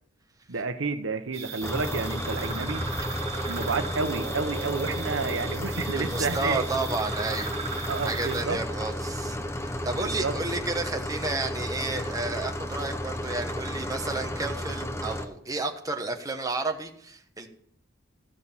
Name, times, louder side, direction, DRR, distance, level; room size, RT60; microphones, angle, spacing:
voice 1, 0.5-2.8 3.4-6.6 7.9-8.6 10.0-10.3, right 4 dB, 80° right, 9 dB, 1.0 m, -30 dB
sound 1, 1.3-8.4, right 5 dB, 35° right, 1.7 m, -37 dB
sound 2, 1.6-15.3, left 1 dB, 15° left, 0.9 m, -33 dB
voice 2, 5.9-17.5, right 3 dB, 20° right, 4 dB, 1.2 m, -32 dB
14.0 x 6.3 x 7.3 m, 0.67 s
head